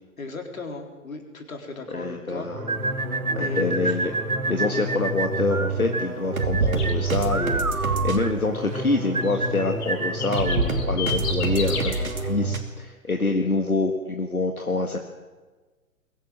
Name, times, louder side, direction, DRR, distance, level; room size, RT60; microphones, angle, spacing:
voice 1, 0.2-2.5 3.4-3.9, left 3 dB, 70° left, 4 dB, 4.1 m, -36 dB
voice 2, 1.9-2.7 3.4-4.1 4.5-15.0, left 3 dB, 90° left, 4 dB, 1.9 m, -26 dB
sound 1, 2.4-12.6, right 2 dB, 75° right, 2.8 m, -28 dB
sound 2, 2.7-10.7, right 3 dB, 90° right, 1.2 m, -29 dB
sound 3, 6.8-7.0 9.2-12.0, left 6 dB, 50° left, 6.9 m, -32 dB
22.5 x 16.5 x 7.6 m, 1.3 s
figure-of-eight pair, 115°, 42 cm